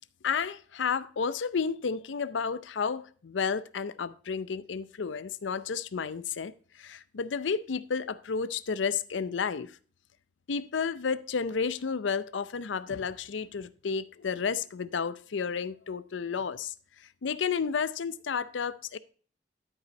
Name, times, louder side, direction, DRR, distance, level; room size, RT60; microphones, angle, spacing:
voice 1, 0.2-9.7 10.5-16.7 17.2-19.0, left 6 dB, 85° left, 0.5 m, -31 dB
12.5 x 5.5 x 4.0 m
head